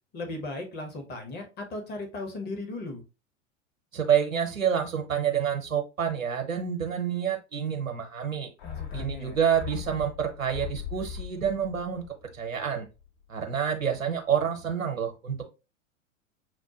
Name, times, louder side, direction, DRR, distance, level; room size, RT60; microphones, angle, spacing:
voice 1, 0.1-3.0 8.6-9.4, left 2 dB, 25° left, 4 dB, 1.0 m, -37 dB
voice 2, 3.9-8.5 8.9-12.1 12.3-12.9 13.3-15.5, right 8 dB, 80° right, 4 dB, 0.8 m, -28 dB
sound 1, 8.6-13.2 13.5-13.6, left 9 dB, 50° left, 1.3 m, -40 dB
6.1 x 2.1 x 2.9 m, 0.29 s
figure-of-eight pair, 90°, 39 cm